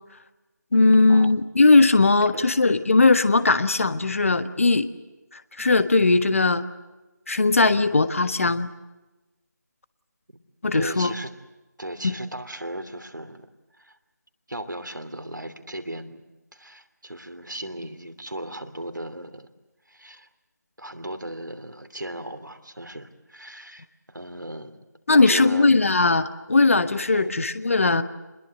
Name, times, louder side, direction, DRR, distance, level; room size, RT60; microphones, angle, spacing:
voice 1, 0.7-4.9 5.3-6.6 7.3-8.7 10.6-11.1 12.0-12.1 25.1-28.0, left 3 dB, 45° left, 12 dB, 1.4 m, -19 dB
voice 2, 10.7-11.3 11.8-13.5 13.8-14.0 14.5-16.3 16.5-19.5 19.9-20.3 20.8-24.8 25.1-25.7 27.1-27.3, right 1 dB, 85° right, 8 dB, 2.9 m, -36 dB
28.0 x 21.5 x 8.0 m, 1.1 s
figure-of-eight pair, 165°, 10 cm